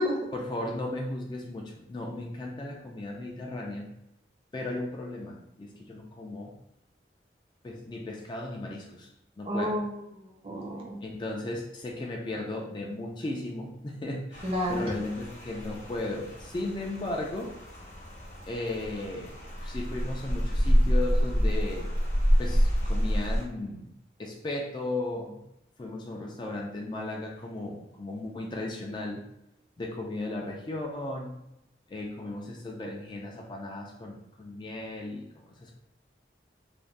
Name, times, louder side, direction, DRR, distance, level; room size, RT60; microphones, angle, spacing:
voice 1, 0.3-3.9 4.5-6.5 7.6-9.1 9.4-9.8 11.0-17.5 18.4-19.3 19.6-21.9 22.4-23.9 24.2-25.4 25.8-29.2 29.8-31.4 31.9-35.7, left 2 dB, 25° left, 0 dB, 0.3 m, -36 dB
voice 2, 9.4-11.0 14.4-14.9, equal, 30° right, -1 dB, 0.6 m, -31 dB
Rain, 14.3-23.4, equal, 40° left, 0.7 m, -28 dB
2.5 x 2.1 x 3.3 m, 0.83 s
head